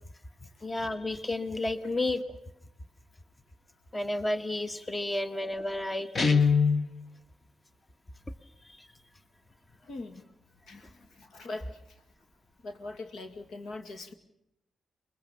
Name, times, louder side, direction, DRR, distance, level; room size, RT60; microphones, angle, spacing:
voice 1, 0.6-2.3 3.9-6.5 8.6-8.9 10.7-10.8, left 2 dB, 20° left, 10 dB, 1.4 m, -32 dB
Guitar, 6.1-6.9, left 5 dB, 45° left, 1.4 m, -22 dB
voice 2, 9.8-10.2 10.7-10.9 11.2-11.8 12.6-14.1, left 2 dB, 70° left, 7 dB, 2.2 m, -41 dB
24.0 x 21.5 x 7.0 m, 0.82 s
supercardioid pair, 55°, 0 cm